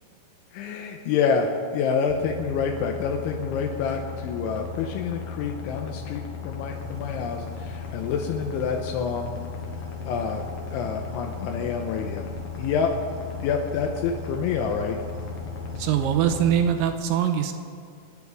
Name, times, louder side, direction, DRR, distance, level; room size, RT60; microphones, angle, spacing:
voice 1, 0.5-9.4 10.1-10.4 10.7-12.9 13.4-15.0, left 6 dB, 80° left, 2 dB, 3.2 m, -27 dB
sound 1, 2.1-16.6, left 6 dB, 65° left, 3.0 m, -37 dB
sound 2, 6.7-16.9, right 2 dB, 55° right, 2.2 m, -42 dB
voice 2, 15.8-17.5, right 9 dB, 80° right, 7 dB, 3.0 m, -23 dB
27.5 x 9.7 x 4.8 m, 2.2 s
omnidirectional pair, 5.5 m